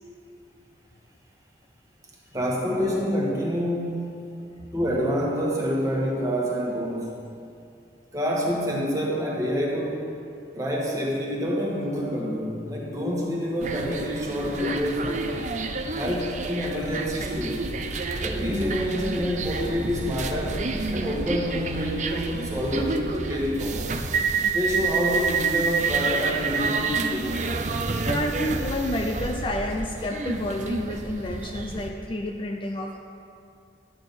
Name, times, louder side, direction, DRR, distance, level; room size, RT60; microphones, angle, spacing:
voice 1, 2.3-4.4 4.7-7.2 8.1-10.1 10.5-15.2 15.9-17.7 18.2-20.6 20.9-24.0 24.5-27.3, equal, 20° right, -3 dB, 1.5 m, -27 dB
voice 2, 4.4-4.7 28.0-33.0, left 1 dB, 30° left, 2 dB, 0.5 m, -30 dB
sound 1, 13.6-31.9, right 4 dB, 45° right, 0.5 m, -29 dB
11.0 x 8.8 x 4.1 m, 2.5 s
head